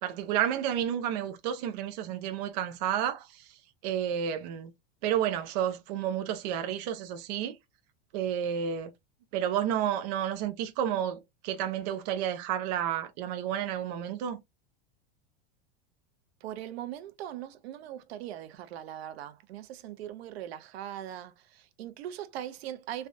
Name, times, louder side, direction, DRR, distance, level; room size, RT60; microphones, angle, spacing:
voice 1, 0.0-3.6 3.8-4.7 5.0-7.6 8.1-8.9 9.3-14.4, right 10 dB, 40° right, 0.4 m, -31 dB
voice 2, 16.4-23.1, right 11 dB, 75° right, 0.7 m, -40 dB
3.3 x 2.3 x 2.5 m
supercardioid pair, 170°, 31 cm